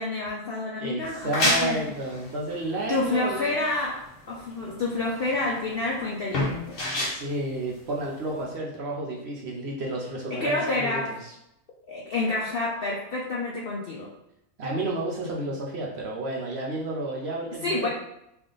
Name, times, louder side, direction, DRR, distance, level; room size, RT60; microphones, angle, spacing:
voice 1, 0.0-1.9 2.9-6.8 10.3-11.2 11.9-14.1 17.6-17.9, left 2 dB, 65° left, -3 dB, 0.5 m, -28 dB
voice 2, 0.8-3.5 7.1-11.3 14.6-17.9, right 2 dB, 60° right, -3 dB, 0.8 m, -31 dB
sound 1, 1.0-8.4, left 1 dB, 45° left, 0.9 m, -30 dB
3.4 x 2.5 x 3.8 m, 0.82 s
omnidirectional pair, 1.5 m